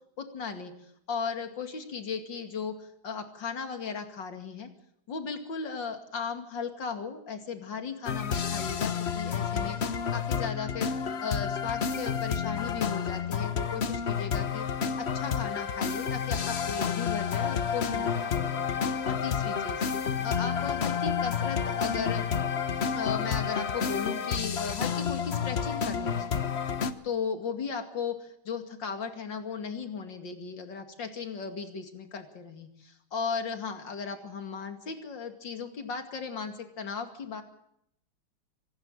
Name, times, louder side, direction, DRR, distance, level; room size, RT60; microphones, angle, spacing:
voice 1, 0.2-4.7 5.1-18.7 19.0-22.2 22.9-26.5 27.0-37.4, left 5 dB, 60° left, 7 dB, 3.0 m, -36 dB
sound 1, 8.0-26.9, left 7 dB, 40° left, 1.0 m, -30 dB
25.5 x 12.0 x 9.0 m, 0.76 s
omnidirectional pair, 2.2 m